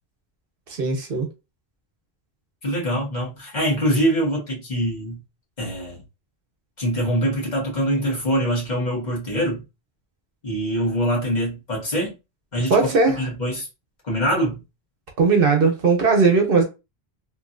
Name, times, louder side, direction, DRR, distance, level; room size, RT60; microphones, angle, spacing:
voice 1, 0.7-1.3 12.7-13.3 15.2-16.6, right 4 dB, 65° right, 1.0 m, -18 dB
voice 2, 2.6-5.2 5.6-6.0 6.8-9.6 10.4-12.1 12.5-12.9 13.2-13.7 14.0-14.6, equal, 45° left, 1.4 m, -24 dB
3.0 x 2.6 x 2.5 m
omnidirectional pair, 1.1 m